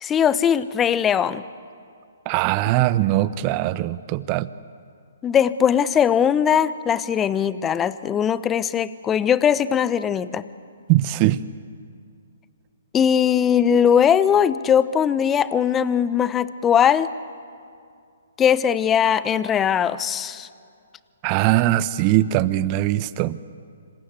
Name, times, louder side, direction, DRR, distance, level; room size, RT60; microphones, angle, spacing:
voice 1, 0.0-1.4 5.2-10.4 12.9-17.1 18.4-20.5, left 8 dB, 15° left, 16 dB, 0.9 m, -20 dB
voice 2, 2.2-4.5 10.9-11.4 21.2-23.4, right 15 dB, 30° right, 16 dB, 0.9 m, -21 dB
27.0 x 25.5 x 8.2 m, 2.3 s
figure-of-eight pair, 130°, 0 cm